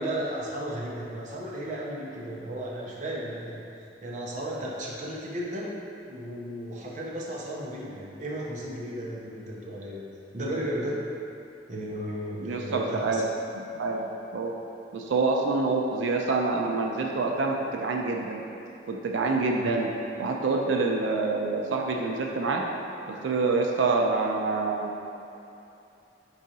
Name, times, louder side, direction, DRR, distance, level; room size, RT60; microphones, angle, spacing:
voice 1, 0.0-3.7 4.0-5.8 6.1-10.0 10.3-11.0 11.7-13.2 19.5-19.7 20.4-20.5, right 1 dB, 40° right, -4 dB, 0.6 m, -34 dB
voice 2, 12.4-13.3 13.5-14.5 14.9-18.4 18.9-19.9 20.2-22.6 23.1-25.0, right 3 dB, 80° right, 1 dB, 0.4 m, -27 dB
4.7 x 3.7 x 2.8 m, 2.8 s
head